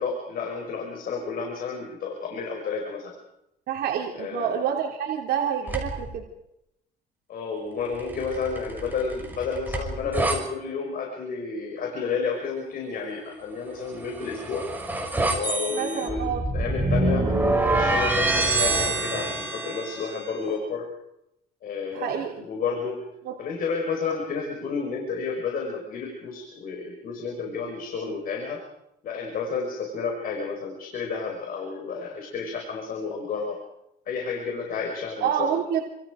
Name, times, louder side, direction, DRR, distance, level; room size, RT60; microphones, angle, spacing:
voice 1, 0.0-3.2 4.1-4.5 7.3-14.7 15.3-17.2 17.6-20.9 21.6-23.0 23.4-28.6 29.0-33.6 34.0-35.6, left 5 dB, 60° left, 2 dB, 5.2 m, -31 dB
voice 2, 3.7-6.2 15.7-16.4 21.9-22.4 23.2-23.3 35.2-35.8, right 8 dB, 70° right, 1 dB, 3.2 m, -27 dB
sound 1, 5.7-6.1 8.0-10.4 13.9-20.3, right 2 dB, 10° right, 6.0 m, -26 dB
29.5 x 26.5 x 5.1 m, 0.84 s
cardioid pair, 110°, 17 cm